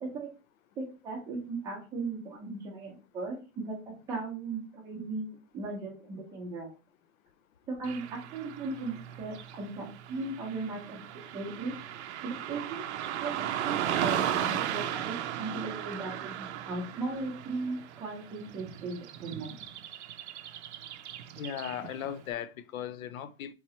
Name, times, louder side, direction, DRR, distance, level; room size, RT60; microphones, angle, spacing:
voice 1, 0.8-6.7 7.7-11.7 12.2-12.9 13.2-19.5, right 3 dB, 10° right, 0.7 m, -37 dB
Car passing by / Traffic noise roadway noise, 7.8-22.1, right 10 dB, 55° right, 0.6 m, -36 dB
voice 2, 21.4-23.5, left 9 dB, 85° left, 0.6 m, -37 dB
3.8 x 3.0 x 4.2 m
supercardioid pair, 180°, 40 cm